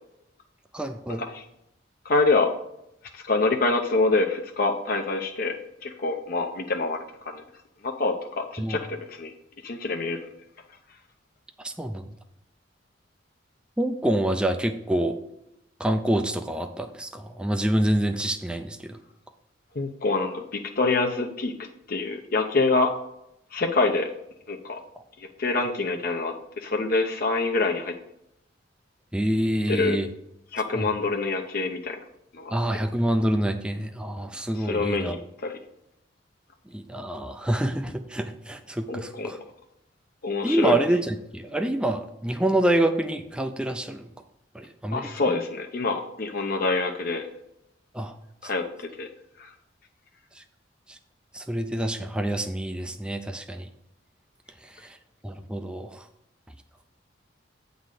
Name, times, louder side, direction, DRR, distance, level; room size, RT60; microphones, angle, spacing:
voice 1, 0.7-1.2 8.6-8.8 11.6-12.0 13.8-15.2 15.8-19.0 29.1-30.1 30.7-30.9 32.5-35.2 36.7-39.4 40.4-44.1 44.5-45.3 47.9-48.1 48.4-48.5 50.4-50.5 50.9-51.0 51.3-53.7 54.6-55.0 55.2-56.0, right 1 dB, 5° right, 6 dB, 0.4 m, -27 dB
voice 2, 2.0-2.5 3.1-5.6 5.8-7.0 7.3-7.4 7.8-9.3 9.6-10.2 19.8-21.5 21.9-22.9 23.5-24.1 24.5-24.8 25.4-26.3 26.6-27.9 29.7-30.0 30.5-32.0 32.3-32.5 34.6-35.5 38.9-39.3 40.2-40.8 44.9-47.3 48.4-48.6 49.0-49.1 49.4-49.5, left 3 dB, 50° left, 3 dB, 0.7 m, -26 dB
8.4 x 4.0 x 6.5 m, 0.81 s
head